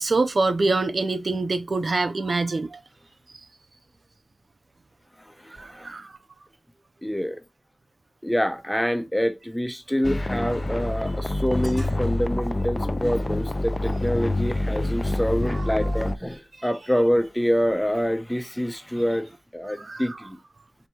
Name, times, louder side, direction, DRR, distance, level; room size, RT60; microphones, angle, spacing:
voice 1, 0.0-2.8 5.6-6.2 11.8-11.9 15.5-16.0 19.8-20.2, right 3 dB, 65° right, 0.4 m, -26 dB
voice 2, 5.2-5.9 7.0-7.4 8.2-20.4, equal, 5° left, 0.7 m, -26 dB
sound 1, 10.0-16.2, left 1 dB, 35° left, 0.4 m, -26 dB
4.6 x 2.2 x 4.0 m
wide cardioid pair, 55°, 0 cm